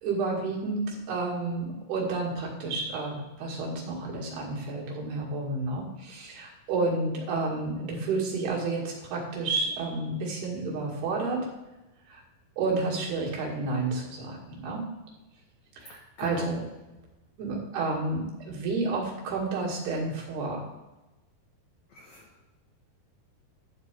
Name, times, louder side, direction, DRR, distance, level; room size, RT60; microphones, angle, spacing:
voice 1, 0.0-11.5 12.1-12.2 12.6-14.9 15.8-16.6 17.4-20.6, right 3 dB, 70° right, -3 dB, 4.1 m, -30 dB
voice 2, 15.9-16.6 21.9-22.5, left 5 dB, 75° left, 0 dB, 1.7 m, -41 dB
11.5 x 4.2 x 7.5 m, 1.0 s
omnidirectional pair, 4.7 m